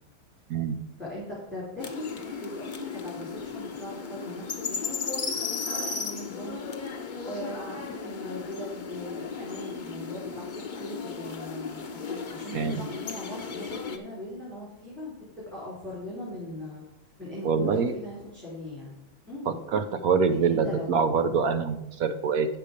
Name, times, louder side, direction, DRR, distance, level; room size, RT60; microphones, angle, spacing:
voice 1, 1.0-6.6 7.2-16.8 17.2-19.0 19.3-19.6 20.3-20.9, left 1 dB, ahead, -8 dB, 3.1 m, -40 dB
sound 1, 1.8-14.0, left 5 dB, 55° left, 0.5 m, -35 dB
voice 2, 17.4-17.9 19.5-22.5, right 5 dB, 70° right, 9 dB, 0.8 m, -25 dB
8.9 x 6.8 x 5.0 m, 0.89 s
omnidirectional pair, 2.1 m